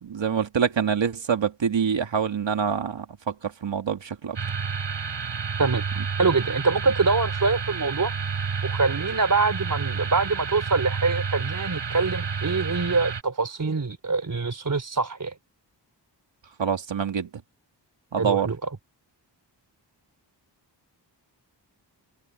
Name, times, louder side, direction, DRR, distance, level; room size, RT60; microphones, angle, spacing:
voice 1, 0.0-4.4 16.6-17.3 18.1-18.5, right 7 dB, 85° right, 2.2 m, -26 dB
sound 1, 4.4-13.2, right 5 dB, 70° right, 6.4 m, -30 dB
voice 2, 6.2-8.1 8.6-15.3 18.2-18.6, right 4 dB, 45° right, 3.5 m, -24 dB
wide cardioid pair, 115°, 44 cm